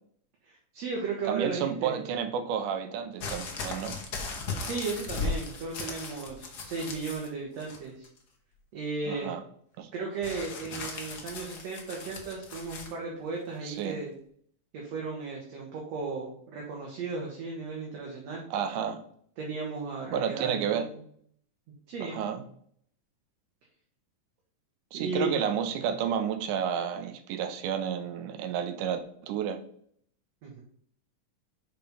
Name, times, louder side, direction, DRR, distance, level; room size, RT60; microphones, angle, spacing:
voice 1, 0.4-2.0 4.6-8.1 8.7-9.3 9.9-14.2 14.7-18.4 19.4-21.0 21.9-22.2 24.9-25.4 30.4-30.6, right 4 dB, 60° right, -2 dB, 2.2 m, -35 dB
voice 2, 1.3-4.0 9.1-9.4 9.8-9.9 13.6-14.0 18.5-19.0 20.1-20.9 22.0-22.4 24.9-29.6, right 8 dB, 85° right, 9 dB, 2.2 m, -31 dB
sound 1, 3.2-7.3 7.6-8.2 10.2-12.9 13.8-13.9, left 4 dB, 80° left, 0.9 m, -37 dB
5.8 x 5.0 x 5.4 m, 0.62 s
omnidirectional pair, 3.6 m